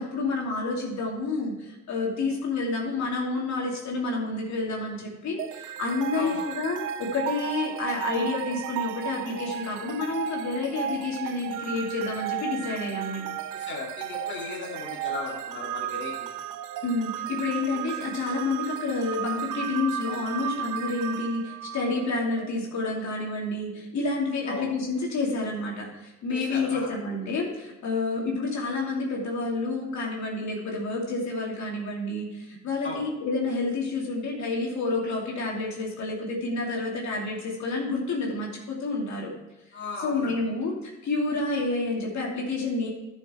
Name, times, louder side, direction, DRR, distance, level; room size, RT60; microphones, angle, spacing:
voice 1, 0.0-13.3 16.8-39.3 40.0-42.9, left 3 dB, 65° left, -2 dB, 2.8 m, -29 dB
sound 1, 5.4-22.5, right 10 dB, 90° right, 0.7 m, -34 dB
voice 2, 6.1-6.5 13.5-16.3 24.4-24.7 26.3-26.9 32.8-33.1 39.7-40.4, left 3 dB, 40° left, -3 dB, 2.6 m, -36 dB
11.5 x 6.6 x 4.5 m, 1.0 s
cardioid pair, 90°, 30 cm